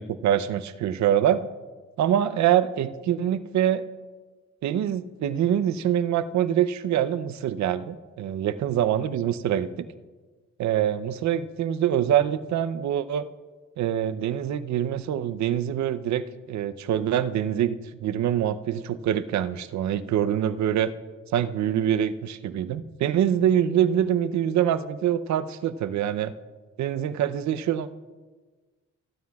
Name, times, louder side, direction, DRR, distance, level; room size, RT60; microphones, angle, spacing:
voice 1, 0.0-1.5 2.0-3.8 4.6-9.7 10.6-13.3 13.8-20.9 21.3-26.3 26.8-27.9, right 10 dB, 65° right, 14 dB, 0.6 m, -25 dB
25.5 x 9.5 x 2.4 m, 1.4 s
cardioid pair, 90°, 30 cm